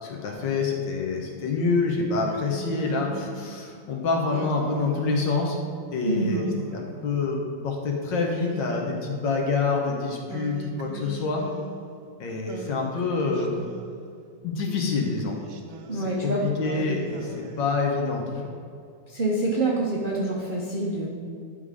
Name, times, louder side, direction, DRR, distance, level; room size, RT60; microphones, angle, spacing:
voice 1, 0.0-5.6 5.9-11.4 12.2-13.6 14.4-15.4 15.9-18.5, left 4 dB, 70° left, 0 dB, 1.7 m, -27 dB
Singing, 2.2-3.7 4.3-5.6 6.2-7.6 8.2-9.7 10.3-12.1 12.5-14.1 14.6-16.2 16.6-18.2, right 3 dB, 70° right, 1.2 m, -41 dB
voice 2, 6.0-6.5 15.9-16.4 19.1-21.1, right 2 dB, 50° right, -4 dB, 0.6 m, -26 dB
10.5 x 3.8 x 4.8 m, 2.3 s
omnidirectional pair, 2.1 m